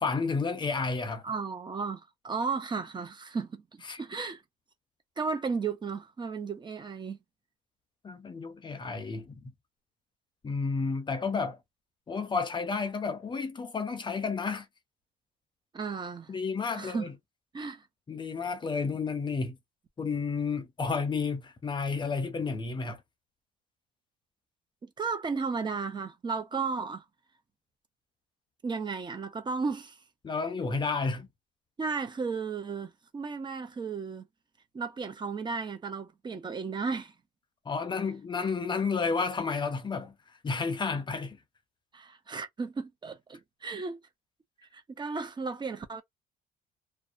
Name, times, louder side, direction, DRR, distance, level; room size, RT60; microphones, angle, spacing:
voice 1, 0.0-1.2 3.9-4.0 8.0-9.4 10.4-11.6 12.1-14.7 16.3-17.1 18.1-19.6 20.0-23.0 30.2-31.3 37.7-40.1 40.4-41.4, left 4 dB, 25° left, 0.6 m, -31 dB
voice 2, 1.2-4.4 5.2-7.2 15.7-16.3 16.8-17.1 17.5-17.9 25.0-27.0 28.6-30.0 31.8-34.3 34.7-37.1 41.9-44.0 44.7-46.0, right 5 dB, 25° right, 0.6 m, -34 dB
2.6 x 2.1 x 2.5 m
cardioid pair, 110°, 17 cm